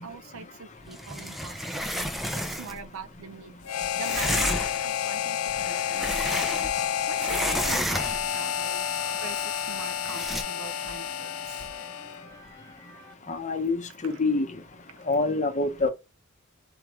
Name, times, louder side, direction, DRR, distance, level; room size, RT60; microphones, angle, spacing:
voice 1, 0.0-3.6 3.9-8.9 9.2-11.7 14.0-14.2 14.9-15.1, right 5 dB, 70° right, 0.5 m, -44 dB
sound 1, 0.9-2.8 4.0-4.9 5.5-6.9 7.1-8.4 10.1-10.4, equal, ahead, 0.4 m, -31 dB
Harmonica, 3.6-12.3, left 9 dB, 75° left, 0.5 m, -30 dB
sound 2, 6.5-13.1, right 1 dB, 15° left, 1.0 m, -50 dB
voice 2, 13.3-14.5 15.1-15.9, left 3 dB, 35° left, 0.7 m, -26 dB
4.5 x 3.1 x 3.5 m
head